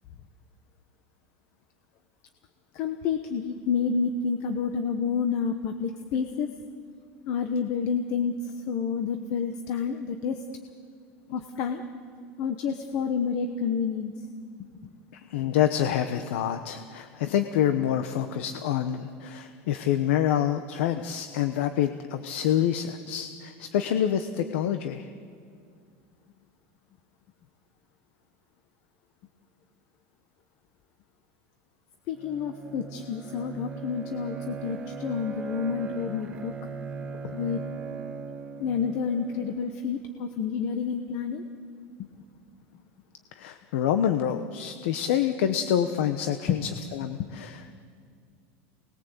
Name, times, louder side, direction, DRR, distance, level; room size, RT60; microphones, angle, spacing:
voice 1, 2.7-6.5 7.3-10.4 11.3-11.8 12.4-14.1 32.1-36.5 37.3-37.6 38.6-41.4 42.0-42.1 46.5-46.7 47.2-47.3, left 6 dB, 40° left, 7 dB, 1.1 m, -29 dB
voice 2, 15.1-25.1 43.3-47.8, left 10 dB, 70° left, 8 dB, 1.0 m, -27 dB
Bowed string instrument, 32.1-40.0, right 5 dB, 15° right, 1.3 m, -39 dB
28.5 x 20.5 x 8.0 m, 2.3 s
supercardioid pair, 175°, 7 cm